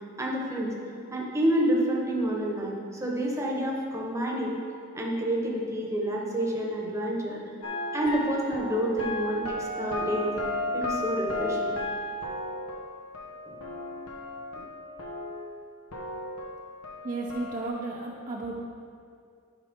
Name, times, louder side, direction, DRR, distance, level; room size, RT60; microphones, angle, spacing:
voice 1, 0.2-0.7 1.1-4.6 4.9-7.4 7.9-10.3 10.7-11.8, equal, 15° right, -2 dB, 1.1 m, -28 dB
sound 1, 7.6-15.6 15.9-17.7, left 1 dB, 90° left, 1.1 m, -34 dB
voice 2, 17.0-18.5, right 2 dB, 40° right, -3 dB, 0.8 m, -33 dB
11.0 x 5.4 x 3.7 m, 2.3 s
head